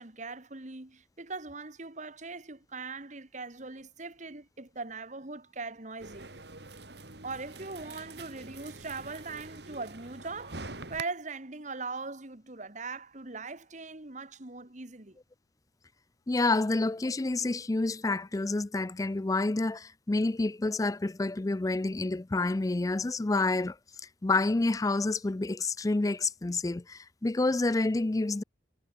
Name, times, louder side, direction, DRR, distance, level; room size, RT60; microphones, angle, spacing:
voice 1, 0.0-6.3 7.2-10.6 10.9-15.2, right 3 dB, 40° right, 1.8 m, -40 dB
sound 1, 6.0-11.0, right 3 dB, 60° right, 3.7 m, -45 dB
voice 2, 16.3-23.8 24.2-28.4, left 2 dB, 20° left, 0.4 m, -28 dB
head